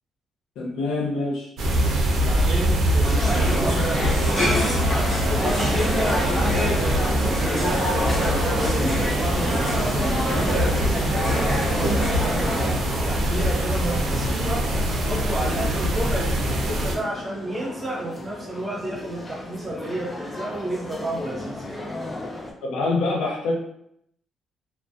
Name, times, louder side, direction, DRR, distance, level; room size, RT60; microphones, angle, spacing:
voice 1, 0.6-1.5 22.6-23.5, left 3 dB, 85° left, -2 dB, 0.6 m, -25 dB
sound 1, 1.6-16.9, right 1 dB, 70° right, 0.5 m, -24 dB
voice 2, 2.2-12.6 13.0-14.7 15.0-21.8, right 1 dB, 30° right, -3 dB, 0.8 m, -31 dB
sound 2, 3.0-12.7, equal, 45° left, 1.2 m, -26 dB
sound 3, 5.3-22.5, left 1 dB, 20° left, 0.4 m, -35 dB
2.4 x 2.1 x 2.4 m, 0.74 s
cardioid pair, 90°, 0 cm